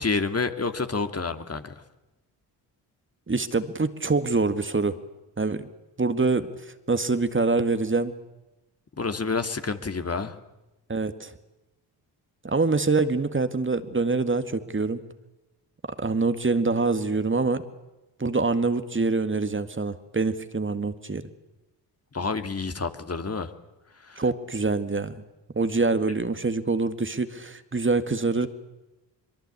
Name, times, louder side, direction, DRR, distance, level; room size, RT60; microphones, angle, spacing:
voice 1, 0.0-1.7 9.0-10.3 22.1-23.5 24.0-24.2, left 4 dB, 30° left, 9 dB, 2.2 m, -28 dB
voice 2, 3.3-4.9 5.4-5.7 6.0-8.1 10.9-11.3 12.4-15.0 16.0-17.6 18.2-21.2 24.2-25.2 25.5-28.5, right 3 dB, 25° right, 10 dB, 2.0 m, -25 dB
23.0 x 23.0 x 8.4 m, 1.0 s
hypercardioid pair, 45°, 49 cm